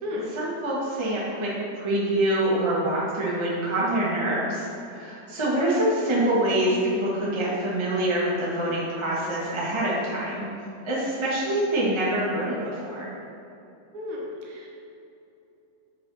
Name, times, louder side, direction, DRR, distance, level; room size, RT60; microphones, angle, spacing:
voice 1, 0.3-10.5 10.8-13.1, right 1 dB, 30° right, -6 dB, 0.5 m, -25 dB
voice 2, 13.9-14.7, left 2 dB, 70° right, -3 dB, 2.4 m, -33 dB
8.9 x 6.9 x 2.9 m, 2.8 s
omnidirectional pair, 3.5 m